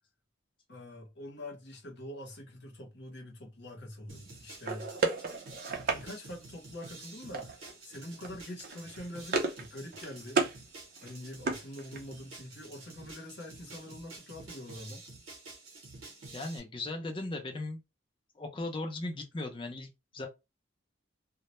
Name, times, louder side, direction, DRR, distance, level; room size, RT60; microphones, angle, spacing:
voice 1, 0.7-4.9 5.9-7.5 7.8-10.4 11.0-15.1, left 1 dB, 55° left, 0.8 m, -45 dB
sound 1, 4.1-16.6, right 3 dB, 80° right, 0.8 m, -50 dB
sound 2, 4.6-6.0 7.3-7.7 8.0-8.3 8.6-9.7 9.9-10.6 11.0-12.2, right 4 dB, 45° right, 0.5 m, -33 dB
voice 2, 16.3-17.8 18.4-20.3, left 2 dB, 25° left, 0.4 m, -37 dB
2.1 x 2.0 x 2.9 m
head